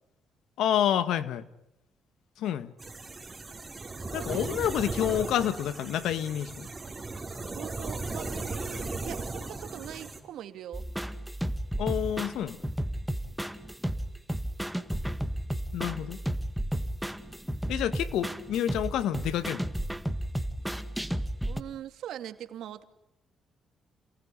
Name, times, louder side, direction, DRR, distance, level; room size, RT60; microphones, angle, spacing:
voice 1, 0.6-1.4 2.4-2.7 4.1-6.7 11.8-12.6 15.7-16.2 17.7-19.6, left 10 dB, 80° left, 13 dB, 1.7 m, -28 dB
sound 1, 2.8-10.2, right 3 dB, 20° right, 5.0 m, -37 dB
voice 2, 4.1-4.7 7.5-10.9 21.5-22.8, right 10 dB, 80° right, 9 dB, 2.3 m, -42 dB
sound 2, 10.7-21.6, right 1 dB, ahead, 1.8 m, -33 dB
28.5 x 19.0 x 10.0 m, 0.86 s
cardioid pair, 90°, 0 cm